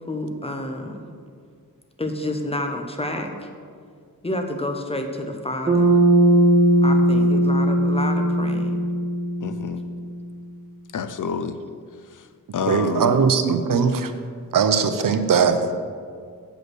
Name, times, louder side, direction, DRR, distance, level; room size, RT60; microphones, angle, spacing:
voice 1, 0.1-1.1 2.0-3.5 4.2-6.0 6.8-8.7, left 1 dB, 15° left, 4 dB, 0.7 m, -29 dB
Bass guitar, 5.7-10.0, right 1 dB, 15° right, 1.4 m, -18 dB
voice 2, 9.4-9.8 10.9-11.6 12.0-12.3 12.5-13.2, left 6 dB, 60° left, 10 dB, 0.5 m, -29 dB
voice 3, 12.7-14.1 14.5-15.7, right 6 dB, 65° right, 9 dB, 0.6 m, -20 dB
7.9 x 5.3 x 6.2 m, 2.1 s
wide cardioid pair, 140°, 36 cm